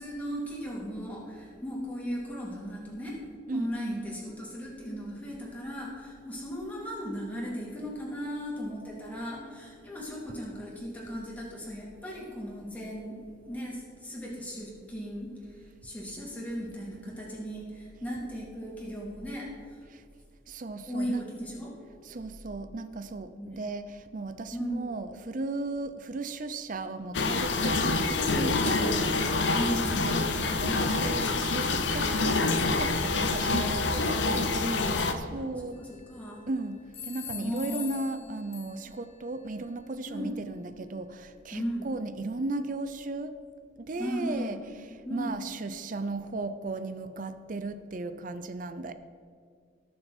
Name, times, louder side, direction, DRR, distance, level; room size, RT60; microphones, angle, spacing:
voice 1, 0.0-3.2 3.5-13.2 13.5-19.8 20.9-21.7 23.4-23.7 24.5-25.0 29.5-30.1 34.3-35.1 35.6-36.4 37.3-37.9 40.1-40.3 41.5-41.9 44.0-44.6 45.0-45.3, equal, 10° left, -5 dB, 2.9 m, -36 dB
voice 2, 3.5-4.0 19.9-20.0 20.5-21.3 22.0-29.5 30.1-34.5 35.2-35.8 36.5-43.3 43.8-44.6 44.9-48.9, right 2 dB, 45° right, 11 dB, 0.5 m, -36 dB
sound 1, 27.1-35.1, left 3 dB, 65° left, 0.9 m, -27 dB
sound 2, 35.7-36.4 36.9-39.1, left 8 dB, 30° left, 0.9 m, -43 dB
18.5 x 6.9 x 4.4 m, 2.2 s
head